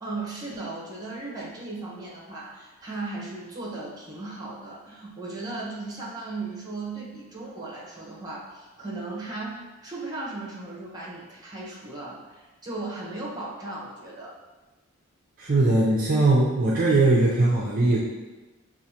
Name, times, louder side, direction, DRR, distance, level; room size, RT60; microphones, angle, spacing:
voice 1, 0.0-14.3, right 2 dB, 20° right, -4 dB, 0.9 m, -36 dB
voice 2, 15.4-18.0, right 2 dB, 40° right, -5 dB, 0.5 m, -20 dB
6.1 x 2.4 x 2.8 m, 1.2 s
head